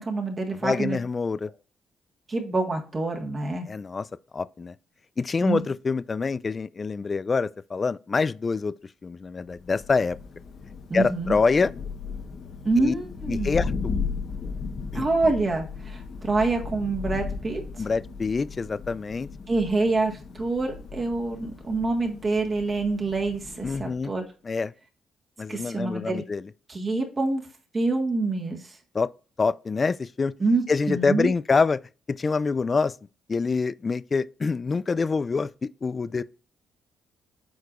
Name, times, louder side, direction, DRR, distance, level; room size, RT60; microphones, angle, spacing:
voice 1, 0.0-1.0 2.3-3.7 5.4-5.6 10.9-11.4 12.6-13.5 14.9-17.6 19.5-24.2 25.5-26.2 26.7-27.4 27.7-28.8 30.4-31.3, right 3 dB, 30° right, 1.6 m, -26 dB
voice 2, 0.6-1.5 3.7-4.1 4.3-4.8 5.2-8.7 9.0-10.2 10.9-11.7 12.8-12.9 13.3-13.9 14.9-15.1 17.8-19.3 23.6-24.1 24.4-24.7 25.4-26.5 28.9-29.1 29.4-30.3 30.7-31.8 32.1-33.0 33.3-36.2, left 4 dB, 35° left, 0.3 m, -26 dB
Thunder, 9.5-24.1, left 5 dB, 55° left, 1.1 m, -36 dB
8.0 x 4.7 x 2.5 m
cardioid pair, 90°, 0 cm